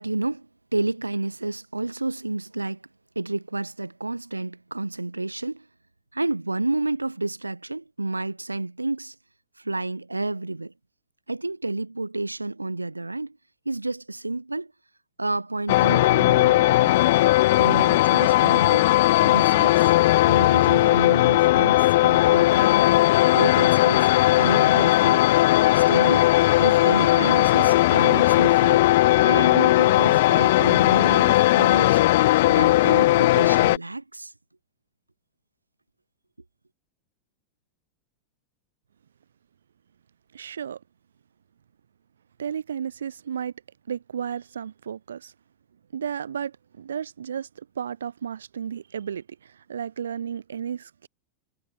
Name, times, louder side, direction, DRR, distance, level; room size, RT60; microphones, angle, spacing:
voice 1, 0.0-2.8 3.2-5.7 6.1-9.1 9.6-10.7 11.3-13.4 13.7-14.7 15.2-17.0 17.6-18.9 19.2-19.9 20.3-22.9 23.3-24.1 24.4-25.3 25.7-26.3 26.6-28.9 29.2-32.0 32.5-34.3, right 2 dB, 85° right, 2.2 m, -30 dB
sound 1, 15.7-33.8, left 16 dB, 55° left, 0.5 m, -18 dB
voice 2, 40.3-40.8 42.4-43.5 43.9-45.3 45.9-51.1, right 8 dB, 65° right, 1.9 m, -33 dB
figure-of-eight pair, 90°, 0 cm